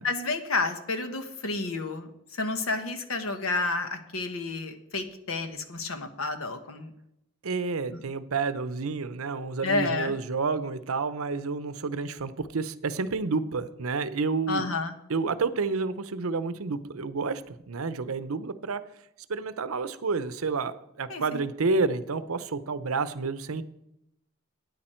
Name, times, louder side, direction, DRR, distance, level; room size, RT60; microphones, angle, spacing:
voice 1, 0.0-6.9 7.9-8.0 9.6-10.1 14.5-14.9 21.1-21.4, left 3 dB, 80° left, 8 dB, 1.4 m, -30 dB
voice 2, 7.4-14.7 15.1-18.8 19.3-23.6, right 4 dB, 85° right, 14 dB, 0.7 m, -30 dB
13.0 x 9.5 x 4.5 m, 0.81 s
head